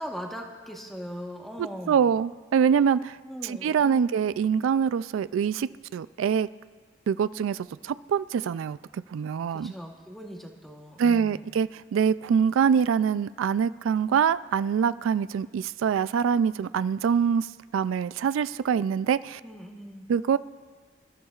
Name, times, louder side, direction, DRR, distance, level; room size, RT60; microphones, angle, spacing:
voice 1, 0.0-2.1 3.3-4.3 9.5-11.5 19.4-20.1, equal, ahead, 1 dB, 1.1 m, -40 dB
voice 2, 1.9-3.2 3.4-6.5 7.1-8.8 9.1-9.7 11.0-17.5 17.7-19.4 20.1-20.4, right 7 dB, 90° right, 15 dB, 0.3 m, -24 dB
27.5 x 13.5 x 2.4 m, 1.5 s
head